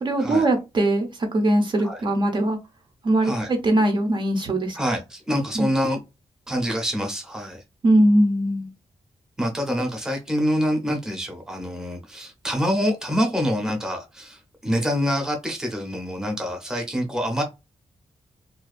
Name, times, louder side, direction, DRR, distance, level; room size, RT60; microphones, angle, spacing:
voice 1, 0.0-2.6 3.0-4.8 5.5-5.7 7.8-8.7, right 1 dB, 45° right, 0.6 m, -21 dB
voice 2, 4.7-6.0 6.5-7.6 9.4-17.4, equal, 5° right, 0.6 m, -26 dB
2.4 x 2.2 x 2.4 m
wide cardioid pair, 150°, 11 cm